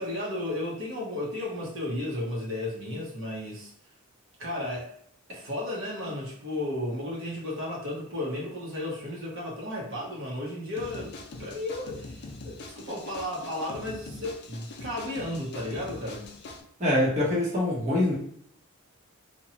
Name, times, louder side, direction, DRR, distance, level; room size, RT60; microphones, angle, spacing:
voice 1, 0.0-3.7 4.4-4.9 5.3-11.1 11.4-16.2, left 1 dB, 60° right, -3 dB, 0.8 m, -34 dB
sound 1, 10.8-16.6, left 2 dB, 50° left, 0.5 m, -43 dB
voice 2, 16.8-18.1, left 1 dB, 30° right, -6 dB, 0.8 m, -24 dB
2.8 x 2.2 x 2.7 m, 0.68 s
head